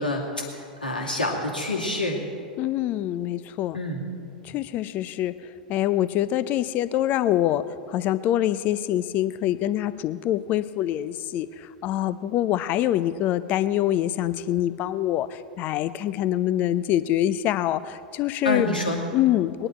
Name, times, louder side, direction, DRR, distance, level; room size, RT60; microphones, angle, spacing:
voice 1, 0.0-2.2 3.7-4.0 18.4-19.0, left 1 dB, 85° left, -1 dB, 2.3 m, -27 dB
voice 2, 2.6-3.8 4.4-18.7 19.1-19.7, left 12 dB, 40° left, 15 dB, 0.6 m, -25 dB
20.0 x 11.0 x 4.4 m, 2.4 s
figure-of-eight pair, 90°, 5 cm